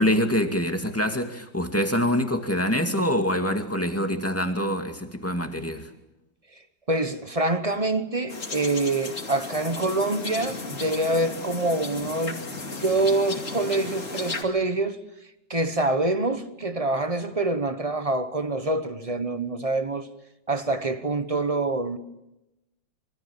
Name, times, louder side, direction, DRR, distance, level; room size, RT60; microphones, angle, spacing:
voice 1, 0.0-5.9, equal, 5° left, 2.1 m, -25 dB
voice 2, 6.9-15.0 15.5-20.1 20.5-22.0, right 2 dB, 25° right, 0.9 m, -26 dB
sound 1, 8.3-14.4, left 3 dB, 40° left, 2.9 m, -35 dB
26.5 x 24.5 x 7.3 m
omnidirectional pair, 2.1 m